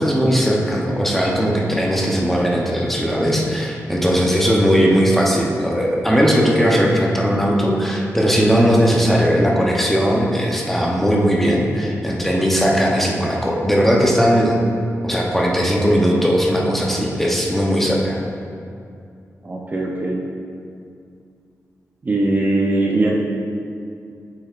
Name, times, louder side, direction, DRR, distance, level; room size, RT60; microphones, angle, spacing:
voice 1, 0.0-14.5 15.0-18.2, equal, 5° left, -3 dB, 0.8 m, -18 dB
voice 2, 19.4-20.2 22.0-23.2, right 2 dB, 30° right, -2 dB, 0.7 m, -20 dB
8.2 x 6.3 x 2.5 m, 2.4 s
wide cardioid pair, 135°, 6 cm